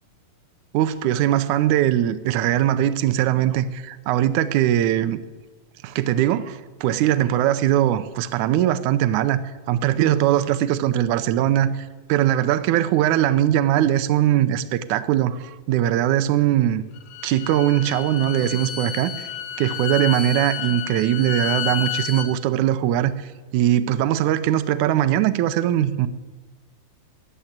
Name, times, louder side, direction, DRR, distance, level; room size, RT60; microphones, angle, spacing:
voice 1, 0.7-5.2 5.8-9.4 9.7-11.7 12.1-16.8 17.2-19.3 19.6-26.1, right 12 dB, 80° right, 13 dB, 1.8 m, -21 dB
Bowed string instrument, 16.9-22.3, left 10 dB, 85° left, 3.0 m, -31 dB
14.0 x 10.5 x 8.7 m, 1.2 s
omnidirectional pair, 4.3 m